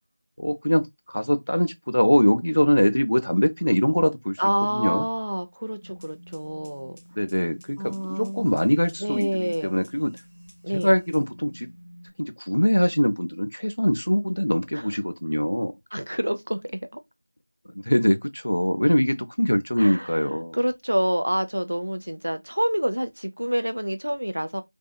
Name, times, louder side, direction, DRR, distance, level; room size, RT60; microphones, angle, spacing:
voice 1, 0.4-4.4 4.7-5.0 7.2-10.1 10.7-11.7 12.2-15.7 17.7-20.6, equal, 80° left, 0.5 m, -23 dB
voice 2, 4.4-7.0 7.8-8.5 9.0-9.7 10.6-10.9 14.7-14.9 15.9-17.0 19.8-20.1 20.5-24.6, equal, 85° right, 0.5 m, -27 dB
sound 1, 5.8-12.1, equal, 20° right, 1.1 m, -49 dB
2.7 x 2.4 x 2.2 m
figure-of-eight pair, 180°, 0 cm